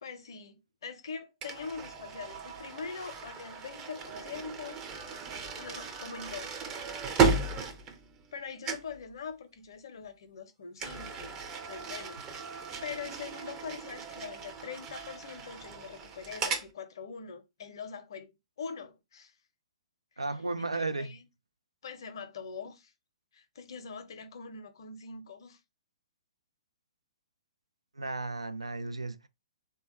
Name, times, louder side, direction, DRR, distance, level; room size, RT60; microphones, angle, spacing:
voice 1, 0.0-4.8 5.6-7.0 8.3-11.4 11.6-18.3 18.6-19.3 20.6-21.2 21.8-22.9 23.3-25.6, left 5 dB, 55° left, 0.6 m, -43 dB
sound 1, 1.4-8.4 8.6-9.0 10.8-16.7, right 5 dB, 20° right, 0.5 m, -35 dB
voice 2, 20.2-21.1 27.9-29.3, right 3 dB, 80° right, 0.3 m, -34 dB
3.4 x 2.2 x 3.0 m
figure-of-eight pair, 120°, 3 cm